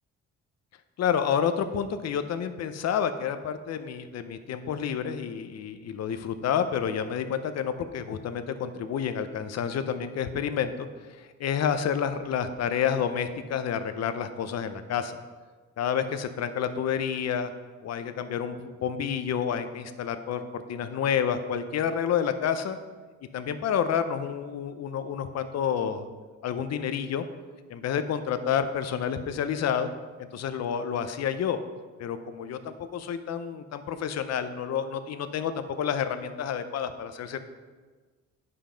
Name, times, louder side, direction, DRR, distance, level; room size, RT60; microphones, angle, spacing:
voice 1, 1.0-10.9 11.2-15.2 15.8-17.5 17.8-22.8 23.3-26.1 26.4-27.2 27.7-29.9 30.3-31.6 32.0-37.4, left 8 dB, 60° left, 9 dB, 0.7 m, -29 dB
9.6 x 5.7 x 5.1 m, 1.4 s
cardioid pair, 90°, 30 cm